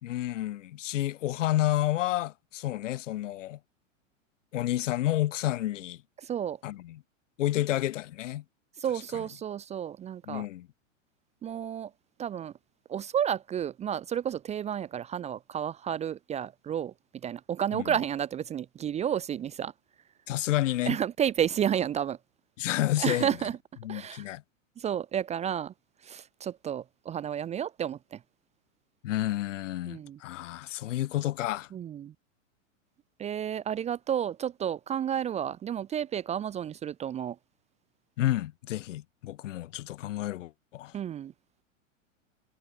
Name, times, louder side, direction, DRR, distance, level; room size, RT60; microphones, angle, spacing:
voice 1, 0.0-3.6 4.5-6.0 6.6-7.0 7.4-8.4 9.1-9.3 10.2-10.7 17.7-18.0 20.3-21.0 22.6-23.4 23.8-24.4 29.0-31.7 38.2-40.9, left 14 dB, 70° left, 3.1 m, -30 dB
voice 2, 6.2-6.6 8.8-10.5 11.4-11.9 12.2-12.5 12.9-16.9 17.2-19.7 20.9-22.2 23.0-23.6 23.9-24.2 24.8-25.7 26.0-28.2 29.9-30.2 31.7-32.1 33.2-37.4 40.9-41.3, right 9 dB, 15° right, 0.8 m, -31 dB
hypercardioid pair, 135°, 39 cm